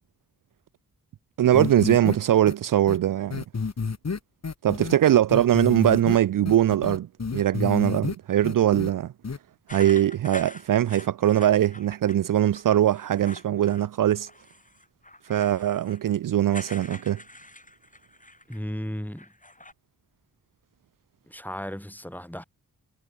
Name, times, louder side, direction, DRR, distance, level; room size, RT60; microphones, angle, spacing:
voice 1, 1.4-3.4 4.6-7.1 7.3-9.1 9.7-14.3 15.3-17.2, right 12 dB, 65° right, 0.5 m, -21 dB
sound 1, 1.5-2.2 2.5-2.6 2.9-3.0 3.3-5.0 5.3-6.2 6.5-8.2 8.4-8.9 9.2-9.4, left 4 dB, 50° left, 2.1 m, -29 dB
sound 2, 9.7-12.2 12.5-13.9 14.2-18.7 19.0-19.7, left 2 dB, 20° left, 6.0 m, -45 dB
voice 2, 18.5-19.3 21.3-22.4, equal, 5° left, 4.5 m, -35 dB
cardioid pair, 50°, 35 cm